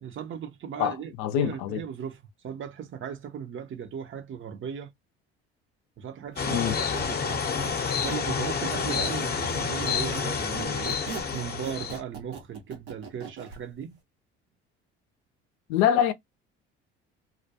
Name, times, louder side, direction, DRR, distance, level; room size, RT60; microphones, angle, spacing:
voice 1, 0.0-4.9 6.0-7.4 7.9-10.9 11.3-14.0, right 8 dB, 40° right, 0.6 m, -37 dB
voice 2, 0.8-1.8 6.5-6.8 15.7-16.1, left 10 dB, 75° left, 0.5 m, -25 dB
sound 1, 6.4-12.0, left 6 dB, 30° left, 0.7 m, -29 dB
Squeak, 6.7-9.2 9.5-13.6, right 5 dB, 90° right, 0.9 m, -40 dB
2.3 x 2.2 x 2.6 m
hypercardioid pair, 60°, 31 cm